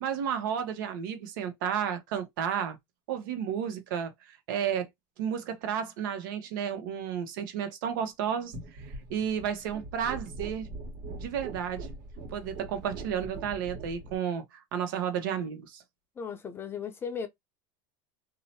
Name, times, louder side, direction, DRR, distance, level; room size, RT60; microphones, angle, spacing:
voice 1, 0.0-2.8 3.1-4.1 4.5-4.9 5.2-8.5 9.1-10.7 11.2-11.9 12.3-15.8, right 8 dB, 80° right, 0.8 m, -32 dB
sound 1, 8.5-14.2, right 2 dB, 60° right, 1.4 m, -42 dB
voice 2, 16.2-17.3, left 6 dB, 20° left, 0.5 m, -36 dB
2.7 x 2.1 x 2.8 m
supercardioid pair, 140°, 11 cm